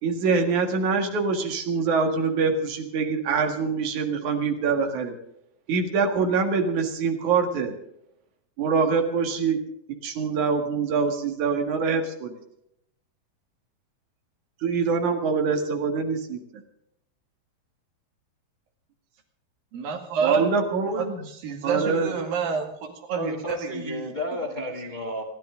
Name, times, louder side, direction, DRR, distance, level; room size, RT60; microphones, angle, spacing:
voice 1, 0.0-5.1 5.7-7.7 8.6-9.6 10.0-12.3 14.6-16.4 20.2-21.2 21.6-22.1, right 5 dB, 60° right, 5 dB, 3.1 m, -24 dB
voice 2, 19.7-20.5 21.0-24.1, right 5 dB, 75° right, 4 dB, 3.9 m, -29 dB
voice 3, 23.1-25.2, left 1 dB, 75° left, 3 dB, 0.4 m, -32 dB
29.0 x 11.5 x 3.8 m, 0.77 s
omnidirectional pair, 4.1 m